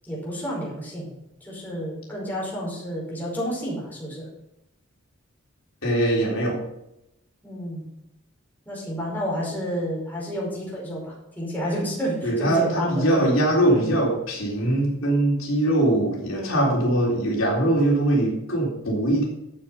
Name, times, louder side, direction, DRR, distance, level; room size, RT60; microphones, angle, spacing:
voice 1, 0.1-1.1 1.4-4.3 7.4-7.8 8.7-13.3 13.6-13.9 16.3-16.7, equal, 10° left, -5 dB, 5.3 m, -30 dB
voice 2, 5.8-6.6 12.2-19.2, right 1 dB, 70° left, -3 dB, 3.8 m, -22 dB
12.5 x 7.5 x 5.6 m, 0.85 s
head